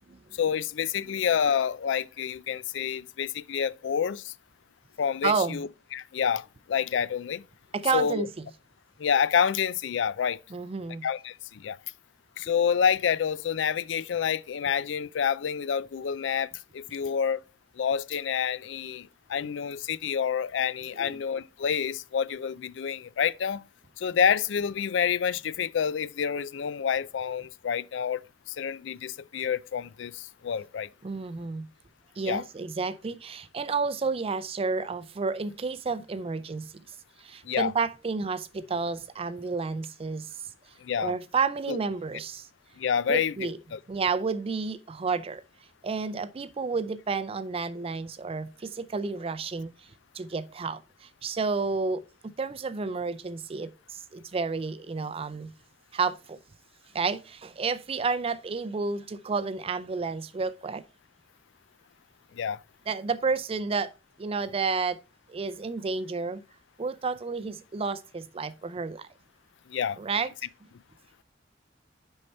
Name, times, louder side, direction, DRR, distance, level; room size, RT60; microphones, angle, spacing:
voice 1, 0.3-4.3 5.0-7.5 7.9-8.3 9.0-10.4 11.0-11.8 12.4-17.4 17.8-23.6 24.0-30.9 32.2-32.4 37.4-37.7 40.8-41.2 41.7-41.8 42.8-43.8 62.3-62.6 69.7-70.0, left 7 dB, 75° left, 0.4 m, -28 dB
voice 2, 5.2-5.6 7.7-8.3 10.5-11.0 21.0-21.2 31.0-31.7 32.2-36.7 37.2-40.3 41.0-42.5 43.1-43.6 43.9-45.4 45.8-49.9 50.1-52.0 52.4-55.5 55.9-56.4 56.9-60.8 62.9-63.9 64.2-65.0 65.3-66.4 66.8-69.1 70.0-70.3, right 4 dB, 30° right, 0.4 m, -31 dB
6.4 x 5.5 x 4.3 m
head